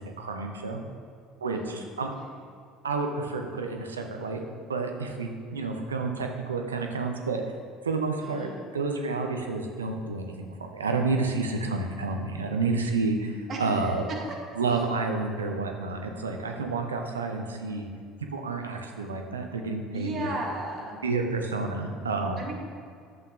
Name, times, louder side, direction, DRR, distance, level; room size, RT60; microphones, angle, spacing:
voice 1, 0.2-0.8 1.4-2.1 2.8-4.4 4.7-7.4 7.8-14.0 14.6-17.9 18.3-20.3 21.0-22.5, right 3 dB, 80° right, 3 dB, 0.6 m, -30 dB
voice 2, 1.5-2.0 8.2-8.7 13.5-14.0 14.7-14.8 19.9-21.0 22.4-22.5, right 1 dB, 40° right, -2 dB, 1.8 m, -35 dB
11.0 x 7.8 x 2.4 m, 2.3 s
figure-of-eight pair, 60°, 0 cm